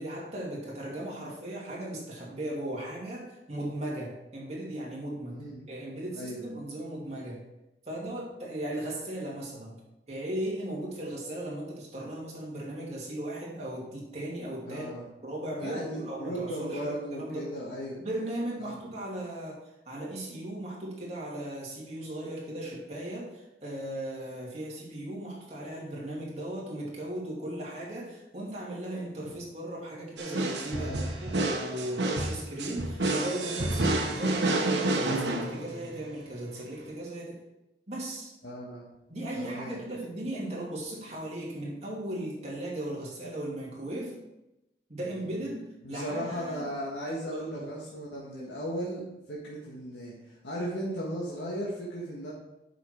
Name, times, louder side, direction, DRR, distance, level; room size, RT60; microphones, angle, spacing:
voice 1, 0.0-7.4 7.8-9.8 10.1-14.9 15.2-17.5 18.0-19.6 19.8-37.4 37.9-38.3 39.1-44.2 44.9-46.7 47.0-47.7, right 1 dB, 40° right, -4 dB, 2.6 m, -37 dB
voice 2, 5.3-5.7 6.1-6.4 14.7-15.0 15.6-18.0 18.6-18.8 30.7-31.0 38.4-38.8 39.3-39.8 45.8-52.3, equal, 80° left, -5 dB, 1.6 m, -36 dB
sound 1, 30.2-36.0, right 2 dB, 85° right, 1.2 m, -29 dB
8.1 x 6.1 x 4.5 m, 0.93 s
head